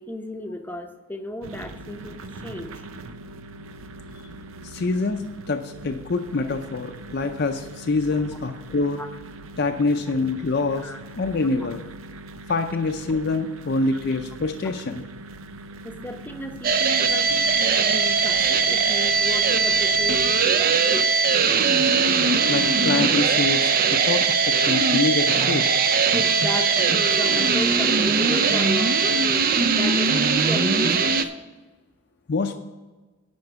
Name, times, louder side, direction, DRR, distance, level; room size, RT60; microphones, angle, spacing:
voice 1, 0.0-2.9 9.0-9.1 10.8-11.0 13.9-14.0 15.8-21.1 26.1-29.3 29.7-31.2, left 1 dB, 10° left, 5 dB, 0.7 m, -34 dB
sound 1, 1.4-20.3, right 2 dB, 85° right, 0.6 m, -41 dB
voice 2, 4.6-9.0 9.6-10.9 11.2-11.8 12.5-15.0 22.4-25.7 32.3-32.6, left 3 dB, 55° left, 5 dB, 0.5 m, -25 dB
sound 2, 16.6-31.2, right 5 dB, 45° right, 0.5 m, -20 dB
10.5 x 4.5 x 7.9 m, 1.2 s
head